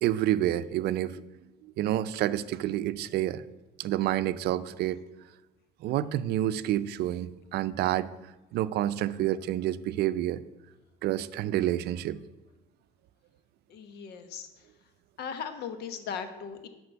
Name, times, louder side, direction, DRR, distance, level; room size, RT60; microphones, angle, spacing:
voice 1, 0.0-1.2 1.8-3.4 3.8-5.0 5.8-8.1 8.5-10.4 11.0-12.2, right 13 dB, 75° right, 15 dB, 0.5 m, -28 dB
voice 2, 13.7-14.5 15.2-16.7, left 7 dB, 75° left, 9 dB, 1.2 m, -38 dB
11.0 x 4.3 x 8.1 m, 1.0 s
cardioid pair, 110°, 17 cm